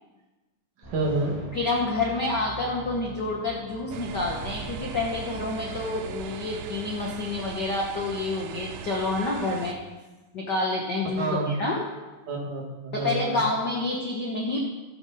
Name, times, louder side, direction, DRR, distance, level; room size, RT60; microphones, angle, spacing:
sound 1, 0.8-7.0, right 3 dB, 5° left, 3.6 m, -43 dB
voice 1, 0.9-1.4 11.2-11.5 12.3-13.4, right 3 dB, 65° right, -1 dB, 3.4 m, -28 dB
voice 2, 1.5-9.8 10.3-11.8 12.9-14.6, left 2 dB, 85° left, -1 dB, 0.9 m, -28 dB
sound 2, 3.9-9.7, right 9 dB, 85° right, 2.4 m, -39 dB
16.0 x 8.1 x 4.1 m, 1.2 s
omnidirectional pair, 3.9 m